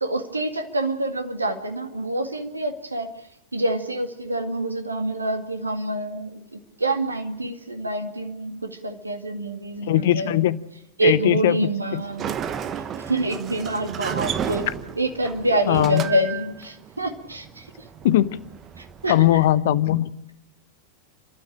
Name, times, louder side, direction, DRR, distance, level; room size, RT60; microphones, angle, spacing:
voice 1, 0.0-3.1 3.5-10.4 11.0-12.4 13.1-14.7 15.0-17.6 19.0-19.2, right 2 dB, 80° right, 6 dB, 2.0 m, -26 dB
voice 2, 9.9-10.6 11.0-12.0 15.7-16.1 18.0-18.4 19.1-20.1, left 13 dB, 55° left, 17 dB, 0.8 m, -20 dB
Sliding door, 12.0-19.5, right 8 dB, 30° right, 1.3 m, -33 dB
30.0 x 12.5 x 8.7 m, 0.84 s
figure-of-eight pair, 90°, 0 cm